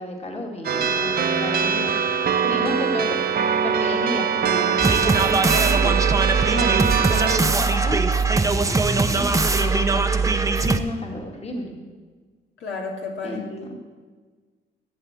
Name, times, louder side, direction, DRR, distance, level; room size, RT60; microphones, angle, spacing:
voice 1, 0.0-1.9 2.4-3.2 3.6-5.9 6.5-8.0 9.1-11.7 13.2-13.7, left 1 dB, 30° left, 1 dB, 2.3 m, -32 dB
sound 1, 0.6-7.4, right 6 dB, 50° right, 1.0 m, -22 dB
sound 2, 4.8-10.8, right 4 dB, 15° right, 0.8 m, -20 dB
voice 2, 12.6-13.8, left 3 dB, 70° left, 0 dB, 2.5 m, -33 dB
13.0 x 7.1 x 8.4 m, 1.5 s
cardioid pair, 90°, 20 cm